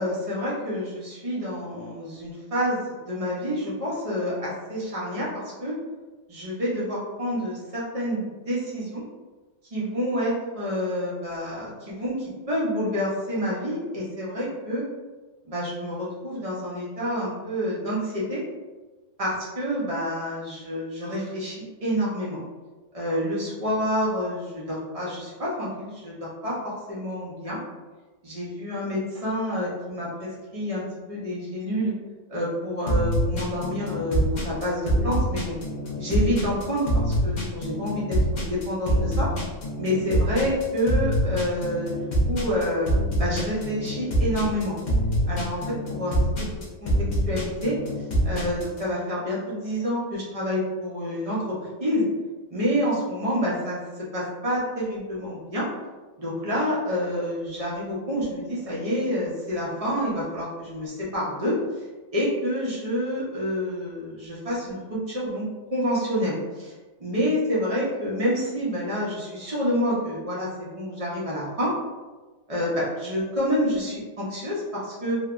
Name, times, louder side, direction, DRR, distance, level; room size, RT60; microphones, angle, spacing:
voice 1, 0.0-5.3 5.6-5.7 6.3-9.0 9.7-14.8 15.5-18.4 19.2-21.5 21.8-22.4 22.9-27.6 28.2-31.9 32.3-35.6 36.0-39.3 39.8-41.9 42.2-42.9 43.2-44.8 45.3-45.6 46.0-46.2 46.8-46.9 47.3-47.8 48.2-51.5 51.8-52.1 52.5-53.8 54.1-55.7 56.2-61.6 62.1-65.4 65.7-66.7 67.0-71.7 72.5-75.2, equal, 45° right, -6 dB, 0.5 m, -28 dB
sound 1, 32.9-48.8, equal, 55° left, 0.5 m, -25 dB
3.2 x 2.1 x 2.4 m, 1.2 s
omnidirectional pair, 1.6 m